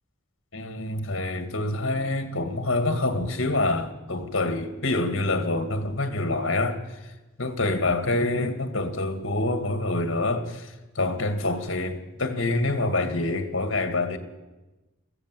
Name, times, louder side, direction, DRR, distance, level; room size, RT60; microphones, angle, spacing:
voice 1, 0.5-6.8 7.4-14.2, left 2 dB, 60° left, 2.1 m, -26 dB
22.0 x 15.5 x 7.7 m
head